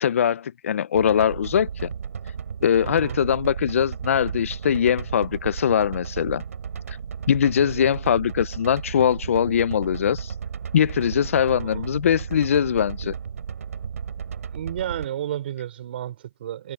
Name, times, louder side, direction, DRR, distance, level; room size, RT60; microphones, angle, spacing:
voice 1, 0.0-1.9 2.6-6.4 7.3-10.3 10.7-13.1, left 8 dB, 65° left, 0.5 m, -22 dB
sound 1, 0.9-15.1, right 7 dB, 90° right, 3.2 m, -34 dB
voice 2, 2.8-3.2 7.6-7.8 11.5-11.9 14.5-16.7, right 11 dB, 45° right, 4.9 m, -32 dB
hypercardioid pair, 170°, 8 cm